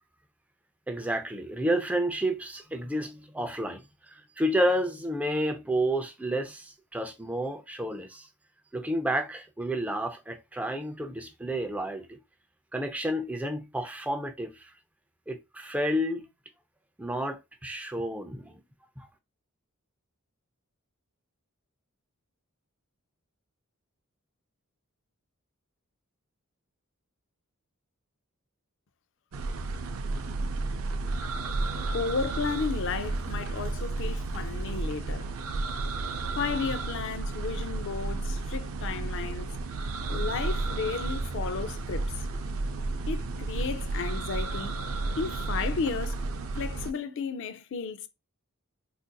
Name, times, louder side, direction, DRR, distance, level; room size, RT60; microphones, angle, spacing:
voice 1, 0.9-8.3 8.7-12.2 12.7-14.7 15.3-16.3 17.0-18.5 19.0-19.1, right 1 dB, 5° right, 0.4 m, -30 dB
sound 1, 29.3-46.9, right 3 dB, 70° right, 0.4 m, -32 dB
voice 2, 31.9-35.3 36.4-39.5 40.1-42.1 43.1-44.7 45.2-46.2 46.5-48.1, left 5 dB, 60° left, 0.4 m, -33 dB
3.9 x 2.5 x 2.2 m
head